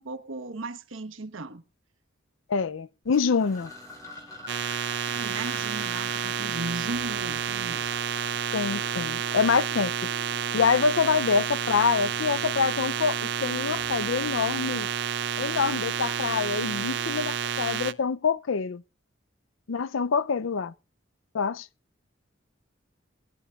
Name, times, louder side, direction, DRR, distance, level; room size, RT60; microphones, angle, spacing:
voice 1, 0.0-1.6 5.1-7.8, right 2 dB, 85° right, 1.2 m, -37 dB
voice 2, 2.5-3.7 8.5-9.9 10.5-14.9 15.4-18.8 19.7-20.7 21.3-21.7, left 5 dB, 80° left, 0.5 m, -26 dB
sound 1, 3.1-9.9, left 2 dB, 15° left, 5.2 m, -47 dB
sound 2, 3.4-17.1, equal, 5° right, 1.9 m, -53 dB
sound 3, 4.5-17.9, right 7 dB, 60° right, 0.7 m, -30 dB
21.0 x 11.0 x 2.4 m
head